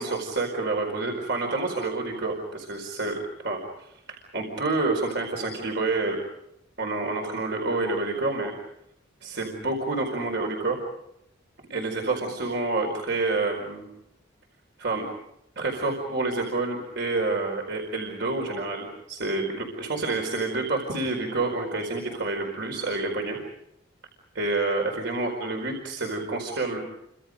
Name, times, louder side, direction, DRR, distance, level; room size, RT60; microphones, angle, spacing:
voice 1, 0.0-6.2 6.8-8.5 9.2-10.8 11.7-13.9 14.8-15.0 15.6-23.4 24.3-26.9, right 3 dB, 60° right, 1 dB, 4.7 m, -28 dB
29.5 x 26.0 x 5.2 m, 0.81 s
head